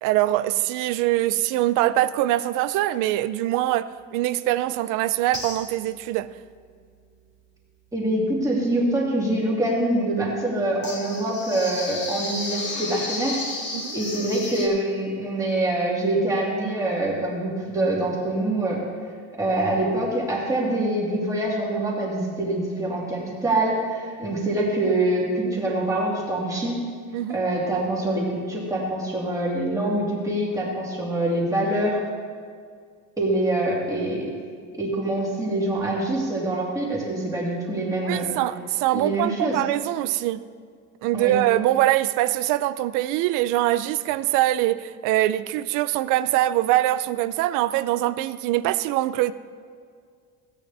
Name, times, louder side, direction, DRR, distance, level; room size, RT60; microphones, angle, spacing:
voice 1, 0.0-6.3 13.7-13.9 27.1-27.4 38.0-40.4 41.0-49.3, right 15 dB, 85° right, 0.5 m, -23 dB
sound 1, 4.9-5.0 5.3-6.0 10.8-14.7, left 2 dB, 35° left, 2.1 m, -32 dB
voice 2, 7.9-13.7 13.9-18.8 19.3-26.8 27.3-32.0 33.2-34.3 34.7-38.3 38.9-39.6 41.1-41.3, right 1 dB, 10° right, 2.3 m, -25 dB
16.5 x 9.0 x 3.4 m
cardioid pair, 160°, 31 cm